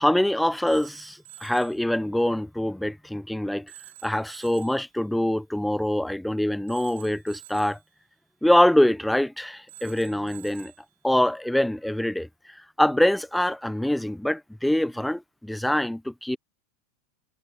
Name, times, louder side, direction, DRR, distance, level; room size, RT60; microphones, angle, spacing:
voice 1, 0.0-3.7 4.0-7.8 8.4-10.7 11.0-16.4, left 1 dB, 5° left, 0.8 m, -24 dB
Telephone, 0.7-1.8 3.7-4.8 6.7-7.8 9.7-10.8, right 17 dB, 65° right, 5.9 m, -48 dB
hypercardioid pair, 95°, 0 cm